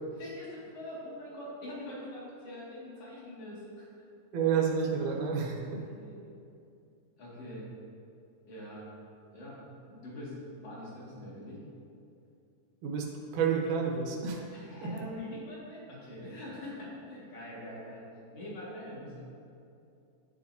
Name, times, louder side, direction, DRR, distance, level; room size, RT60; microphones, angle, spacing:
voice 1, 0.2-3.9 5.8-6.3 7.2-7.7 8.5-8.9 9.3-11.6 14.5-18.1 18.3-19.2, left 1 dB, 55° left, -7 dB, 3.2 m, -44 dB
voice 2, 4.3-5.8 12.8-13.1 13.3-14.5 14.8-15.0, right 6 dB, 90° right, 0 dB, 2.5 m, -30 dB
11.5 x 7.0 x 2.8 m, 2.6 s
omnidirectional pair, 3.5 m